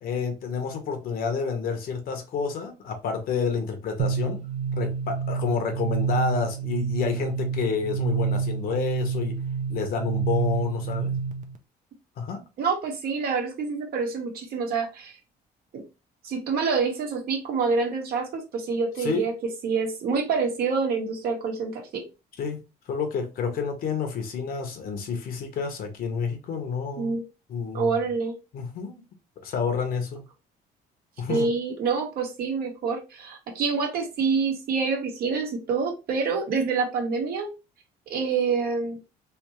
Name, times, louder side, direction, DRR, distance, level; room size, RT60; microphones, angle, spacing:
voice 1, 0.0-4.4 4.7-9.4 9.7-11.2 12.2-12.4 19.0-19.3 22.4-27.1 27.5-27.9 28.5-29.0 29.4-30.2 31.2-31.5, left 5 dB, 60° left, 1.1 m, -29 dB
sound 1, 4.0-11.6, right 6 dB, 45° right, 0.7 m, -28 dB
voice 2, 12.6-15.2 15.7-15.8 16.2-19.3 19.6-22.0 27.0-27.2 27.7-28.3 31.3-37.5 38.1-39.0, right 5 dB, 65° right, 1.3 m, -27 dB
3.5 x 2.8 x 3.0 m
cardioid pair, 110°, 17 cm